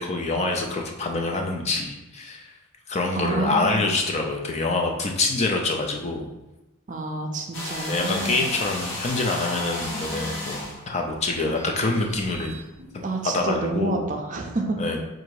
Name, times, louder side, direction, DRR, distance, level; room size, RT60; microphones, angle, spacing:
voice 1, 0.0-2.5 2.9-6.3 7.9-12.6 12.9-14.0 14.8-15.0, left 2 dB, 30° left, 2 dB, 0.4 m, -26 dB
voice 2, 3.2-3.9 6.9-8.4 12.8-14.8, right 2 dB, 35° right, 2 dB, 0.4 m, -29 dB
sound 1, 7.5-12.7, left 1 dB, 55° left, 1.0 m, -34 dB
3.7 x 2.5 x 4.6 m, 0.99 s
head